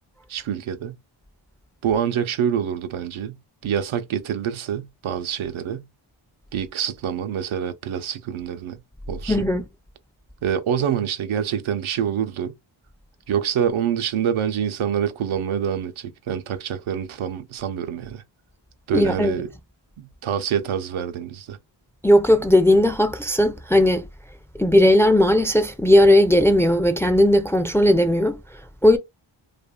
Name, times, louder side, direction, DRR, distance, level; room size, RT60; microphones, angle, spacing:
voice 1, 0.3-1.0 1.8-5.9 6.5-8.8 9.1-9.5 10.4-12.5 13.3-18.2 18.9-19.5 20.0-21.6, right 8 dB, 80° right, 0.6 m, -26 dB
voice 2, 9.3-9.6 18.9-19.4 22.0-24.1 24.6-28.4 28.8-29.0, left 1 dB, 5° left, 0.3 m, -17 dB
2.7 x 2.5 x 2.2 m
cardioid pair, 70°, 48 cm